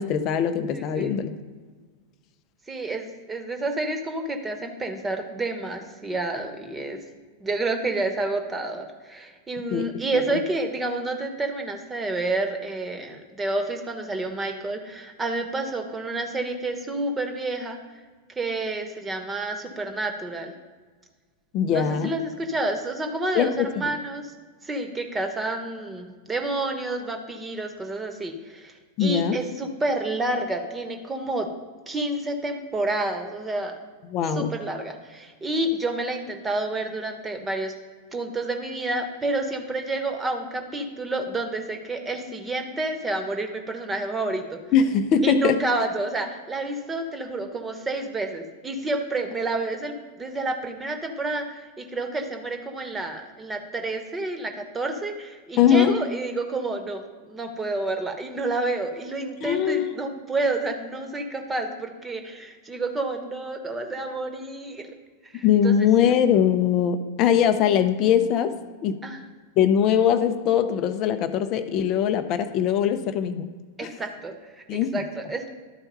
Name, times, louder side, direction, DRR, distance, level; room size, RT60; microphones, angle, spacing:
voice 1, 0.0-1.3 9.7-9.9 10.1-10.4 21.5-22.2 23.3-23.9 29.0-29.4 34.1-34.5 44.7-45.6 55.6-56.0 59.4-59.9 65.4-68.5 68.8-69.0 69.6-73.5 73.8-73.9 74.7-75.0, left 8 dB, 40° left, 9 dB, 0.6 m, -21 dB
voice 2, 0.7-1.1 2.7-7.0 7.4-17.8 18.4-20.5 21.7-24.3 24.6-28.7 29.0-31.5 31.9-33.8 34.3-37.7 38.1-44.6 45.2-57.0 57.3-64.9 65.3-65.7 69.0-69.2 73.8-75.5, right 2 dB, 15° right, 5 dB, 1.1 m, -29 dB
12.0 x 4.5 x 5.4 m, 1.5 s
figure-of-eight pair, 90°, 0 cm